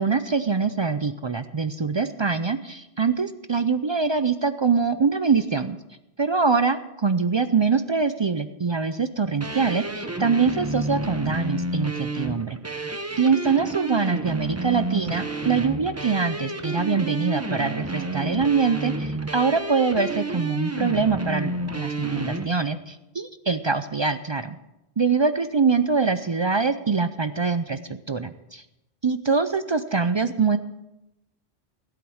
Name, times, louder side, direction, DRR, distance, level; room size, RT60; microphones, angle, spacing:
voice 1, 0.0-5.8 6.2-12.6 13.2-24.6 25.0-27.8 28.1-28.6 29.0-30.6, right 5 dB, 45° right, 11 dB, 0.3 m, -24 dB
sound 1, 9.4-22.5, right 2 dB, 15° right, 0.7 m, -30 dB
15.5 x 8.6 x 6.4 m, 0.93 s
omnidirectional pair, 1.1 m